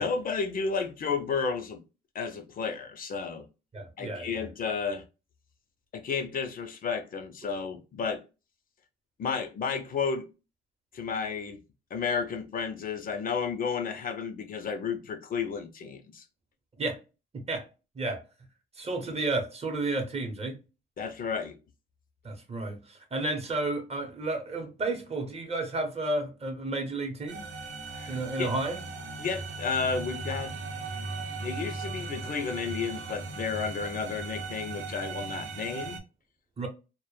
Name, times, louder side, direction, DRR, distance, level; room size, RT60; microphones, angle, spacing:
voice 1, 0.0-1.8 2.1-3.5 4.0-5.0 5.9-8.2 9.2-10.3 10.9-11.6 11.9-16.2 21.0-21.6 27.9-28.5 29.2-30.5 31.4-36.0, left 5 dB, 45° left, 0.4 m, -32 dB
voice 2, 3.7-4.4 16.8-17.0 17.3-17.7 17.9-18.2 18.8-20.6 22.2-27.5 28.1-28.8 36.6-36.7, right 2 dB, 30° right, 0.7 m, -32 dB
sound 1, 27.3-36.0, right 3 dB, 80° right, 0.6 m, -38 dB
2.1 x 2.0 x 3.0 m
cardioid pair, 90°, 20 cm